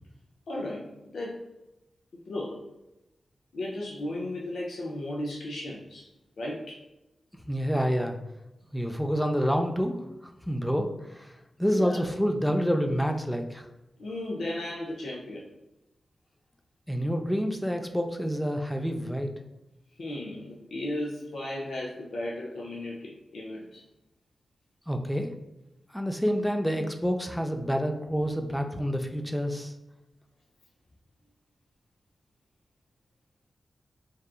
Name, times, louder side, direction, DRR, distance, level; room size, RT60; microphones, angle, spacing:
voice 1, 0.5-1.4 2.3-2.7 3.5-6.1 6.4-6.8 11.7-12.0 14.0-15.5 20.0-23.8, left 1 dB, 80° left, -3 dB, 0.4 m, -35 dB
voice 2, 7.5-8.2 8.7-11.3 11.6-13.7 16.9-19.3 24.9-25.3 25.9-29.7, equal, 5° left, 4 dB, 0.3 m, -28 dB
2.8 x 2.3 x 2.3 m, 0.92 s
cardioid pair, 70°, 0 cm